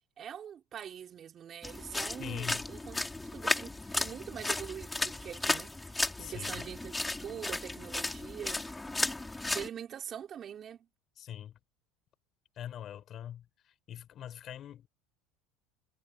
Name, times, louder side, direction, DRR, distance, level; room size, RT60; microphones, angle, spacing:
voice 1, 0.2-3.0 3.3-8.9 9.5-10.9, right 9 dB, 40° right, 5.2 m, -44 dB
sound 1, 1.6-9.7, left 2 dB, 10° left, 4.7 m, -34 dB
voice 2, 2.2-2.7 3.1-3.3 6.2-6.6 11.2-11.6 12.6-14.9, left 10 dB, 45° left, 5.8 m, -43 dB
supercardioid pair, 95°, 0 cm